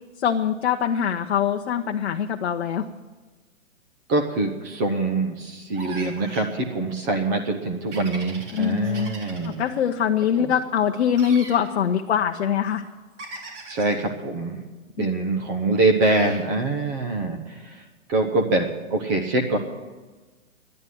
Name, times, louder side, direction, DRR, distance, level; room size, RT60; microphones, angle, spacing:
voice 1, 0.2-2.9 8.5-9.2 9.4-12.8 15.0-15.1, left 8 dB, 50° left, 4 dB, 0.8 m, -23 dB
voice 2, 4.1-9.6 13.7-14.6 15.0-17.8 18.1-19.6, right 2 dB, 15° right, 3 dB, 0.6 m, -24 dB
sound 1, 5.7-6.5 7.9-9.6 11.1-11.6 13.2-14.0 16.0-16.4, right 3 dB, 60° right, 3.7 m, -39 dB
11.5 x 9.9 x 9.2 m, 1.3 s
hypercardioid pair, 145°, 41 cm